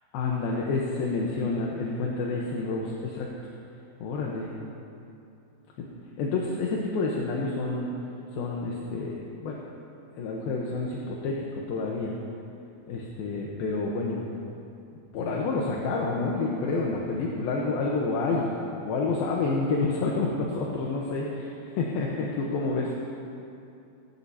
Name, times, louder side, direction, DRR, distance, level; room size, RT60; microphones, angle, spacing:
voice 1, 0.1-3.3 4.0-4.5 5.8-5.9 6.2-7.9 8.3-9.6 10.2-12.1 12.9-14.3 15.1-18.5 18.8-22.9, left 3 dB, 75° left, -2 dB, 2.8 m, -29 dB
18.5 x 16.5 x 2.9 m, 2.6 s
omnidirectional pair, 4.6 m